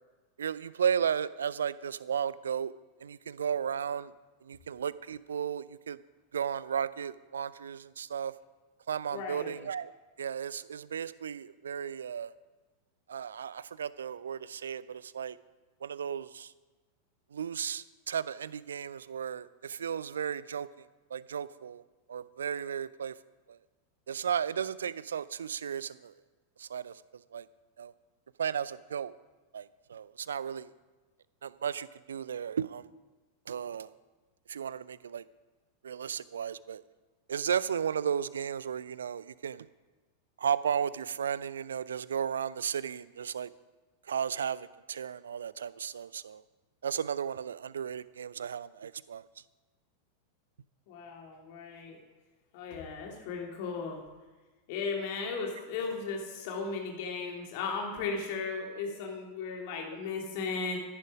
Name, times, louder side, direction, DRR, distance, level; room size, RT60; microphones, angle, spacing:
voice 1, 0.4-2.7 3.0-4.1 4.4-6.0 6.3-8.3 8.9-9.9 10.2-12.3 13.1-15.4 15.8-16.5 17.3-20.9 21.1-21.8 22.1-23.2 23.5-23.6 24.1-26.1 26.6-27.0 27.3-27.5 27.8-27.9 28.4-29.1 29.5-30.7 31.4-32.9 33.5-33.9 34.5-35.2 35.8-36.8 37.3-39.7 40.4-43.5 44.1-46.4 46.8-49.3, right 8 dB, 65° right, 19 dB, 0.4 m, -34 dB
voice 2, 9.1-9.5 50.9-52.0 52.5-54.0 54.7-60.8, left 4 dB, 50° left, 1 dB, 2.8 m, -36 dB
15.0 x 10.5 x 5.0 m, 1.3 s
figure-of-eight pair, 90°, 0 cm